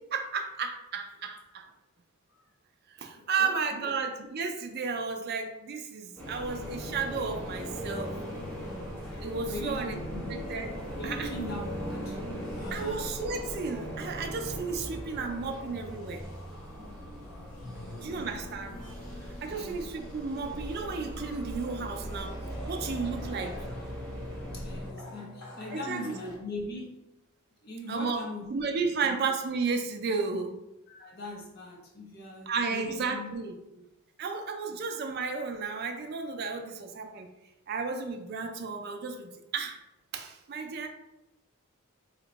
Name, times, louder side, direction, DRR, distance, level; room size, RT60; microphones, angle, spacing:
voice 1, 0.1-1.7 3.0-8.2 9.2-9.9 10.3-10.7 11.0-11.3 12.7-16.2 18.0-18.8 19.4-22.4 22.7-23.6 25.7-26.3 27.9-28.2 28.5-30.6 32.5-33.5 34.2-37.3 37.7-39.8 40.1-40.9, right 4 dB, 45° right, 5 dB, 0.4 m, -33 dB
voice 2, 3.1-3.9 9.5-10.4 11.0-12.2 12.6-13.1 17.6-18.5 19.5-19.9 24.5-27.0 27.6-29.1 30.9-33.3 33.7-33.8, left 1 dB, 45° left, -1 dB, 0.7 m, -41 dB
sound 1, 6.2-24.9, equal, 5° left, 0.8 m, -39 dB
sound 2, 6.4-26.4, left 1 dB, 80° left, 0.8 m, -47 dB
2.9 x 2.2 x 3.9 m, 0.90 s
head